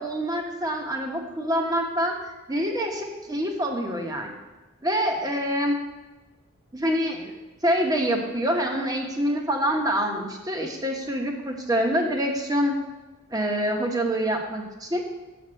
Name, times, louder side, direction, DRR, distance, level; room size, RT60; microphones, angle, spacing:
voice 1, 0.0-4.4 4.8-5.7 6.7-7.3 7.6-12.8 13.3-15.0, equal, 15° right, 2 dB, 1.1 m, -26 dB
7.3 x 6.1 x 7.5 m, 1.2 s
head